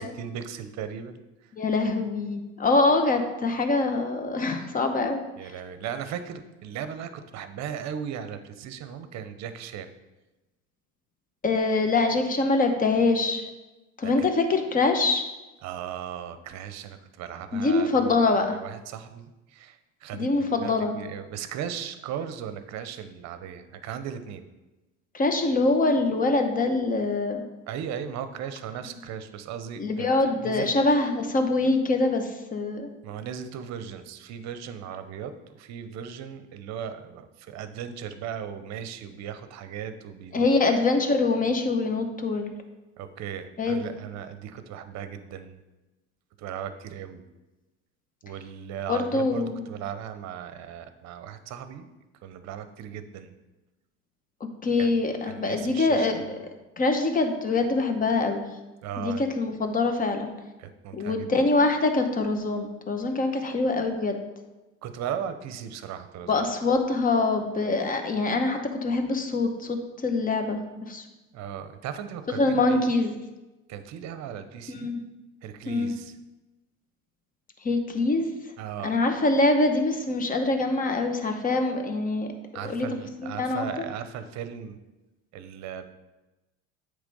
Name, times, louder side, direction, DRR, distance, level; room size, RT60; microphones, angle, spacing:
voice 1, 0.0-1.5 5.4-9.9 14.0-14.3 15.6-18.1 18.5-24.5 27.7-30.1 30.4-30.8 33.0-40.5 43.0-45.6 46.4-47.3 48.2-51.9 52.2-53.3 54.8-54.9 55.3-56.1 58.8-59.2 60.6-61.5 64.8-66.4 71.3-72.8 73.7-74.9 75.4-76.2 78.6-78.9 82.5-84.8 85.3-85.9, right 8 dB, 55° right, 10 dB, 0.7 m, -37 dB
voice 2, 1.6-5.2 11.4-13.5 14.0-15.2 17.5-18.6 20.1-21.0 25.1-27.4 29.8-32.9 40.3-42.5 43.6-43.9 48.9-49.6 54.6-56.2 56.8-58.4 59.0-60.3 60.9-64.2 66.3-70.6 70.9-71.0 72.4-73.1 74.7-75.0 75.7-75.9 77.6-78.3 78.8-82.3 82.6-82.9 83.2-83.6, left 3 dB, 25° left, 6 dB, 0.9 m, -24 dB
8.0 x 3.4 x 5.4 m, 1.1 s
supercardioid pair, 100°, 33 cm